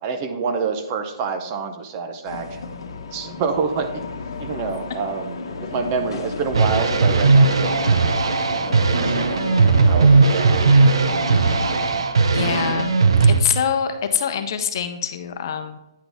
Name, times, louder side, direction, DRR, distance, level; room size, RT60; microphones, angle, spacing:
voice 1, 0.0-2.7 3.1-4.0 4.4-9.2 9.8-10.7, right 5 dB, 30° right, 8 dB, 0.6 m, -27 dB
sound 1, 2.2-12.0, left 4 dB, 70° left, 0.9 m, -32 dB
sound 2, 6.5-13.4, right 4 dB, 90° right, 0.6 m, -17 dB
voice 2, 12.3-13.0 13.3-15.8, left 8 dB, 50° left, 8 dB, 0.7 m, -24 dB
9.3 x 4.0 x 3.4 m, 0.93 s
hypercardioid pair, 155°, 3 cm